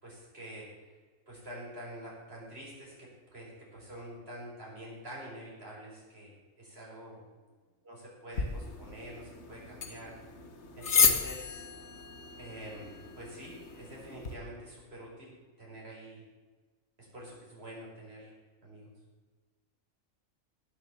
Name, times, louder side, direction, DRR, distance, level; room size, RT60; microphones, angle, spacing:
voice 1, 0.0-0.7 1.3-7.2 7.8-10.1 10.8-11.6 12.4-16.2 17.1-18.3 18.6-18.9, right 1 dB, 45° right, -5 dB, 5.6 m, -46 dB
sound 1, 8.3-14.3, left 5 dB, 55° left, 1.5 m, -32 dB
17.5 x 7.1 x 7.0 m, 1.4 s
omnidirectional pair, 1.5 m